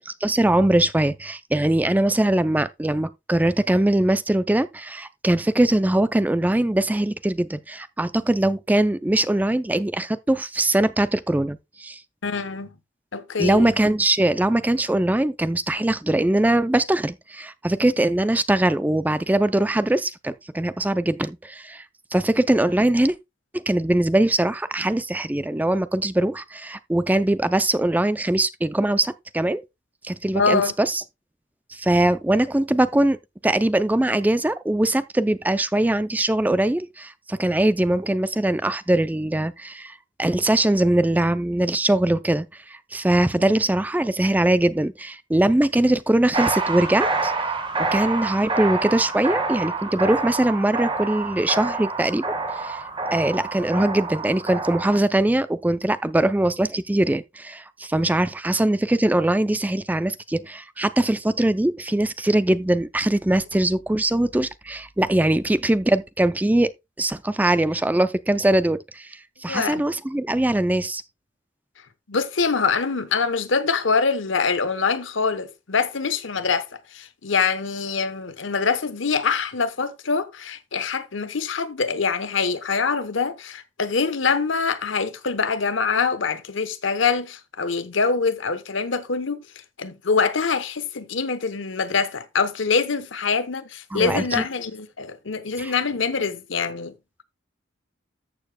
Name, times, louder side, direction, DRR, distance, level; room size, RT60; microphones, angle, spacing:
voice 1, 0.2-12.0 13.4-21.8 22.1-23.1 23.5-29.6 30.0-31.0 31.7-33.2 33.4-47.3 47.9-52.2 52.6-52.8 53.1-66.7 67.0-71.0 93.9-94.4 95.6-95.7, right 1 dB, 10° right, 0.4 m, -21 dB
voice 2, 12.2-12.7 13.1-13.7 30.3-30.7 69.5-69.8 72.1-89.4 89.8-96.9, left 5 dB, 85° left, 0.9 m, -24 dB
sound 1, 46.3-55.0, right 3 dB, 25° right, 1.4 m, -27 dB
13.5 x 6.8 x 2.2 m
head